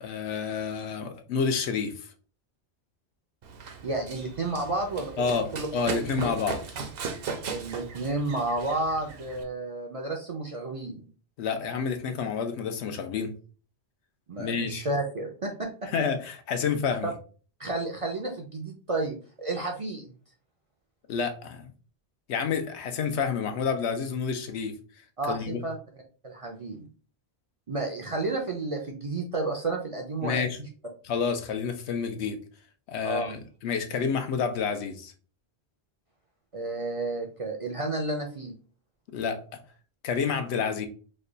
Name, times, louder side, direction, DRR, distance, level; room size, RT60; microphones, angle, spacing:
voice 1, 0.0-1.9 5.2-5.5 5.7-6.6 11.4-13.3 14.4-14.8 15.9-17.1 21.1-21.7 22.3-24.7 25.3-25.6 30.2-30.6 31.0-32.4 32.9-35.1 39.1-39.4 40.0-40.9, left 6 dB, 90° left, 7 dB, 0.9 m, -29 dB
Run, 3.4-9.4, right 5 dB, 65° right, 0.8 m, -37 dB
voice 2, 3.8-5.3 5.5-5.7 6.0-6.1 7.5-11.1 14.3-15.9 17.6-20.1 25.2-25.8 26.2-26.9 27.7-30.7 33.0-33.3 36.5-38.5, right 2 dB, 50° right, 1 dB, 0.4 m, -31 dB
3.2 x 2.2 x 3.7 m, 0.39 s
omnidirectional pair, 1.1 m